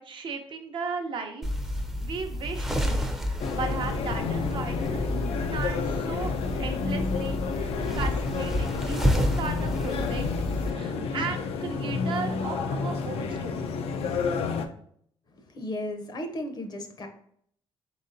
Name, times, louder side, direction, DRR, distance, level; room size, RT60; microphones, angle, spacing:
voice 1, 0.0-1.5 2.0-10.3 10.7-13.8, right 4 dB, 55° right, 4 dB, 0.6 m, -36 dB
sound 1, 1.4-10.7, left 1 dB, 5° right, 0.5 m, -30 dB
sound 2, 3.4-14.7, left 5 dB, 80° left, 0.5 m, -30 dB
voice 2, 15.4-17.1, left 1 dB, 45° left, 6 dB, 0.7 m, -35 dB
3.9 x 3.6 x 2.6 m, 0.64 s
cardioid pair, 120°, 10 cm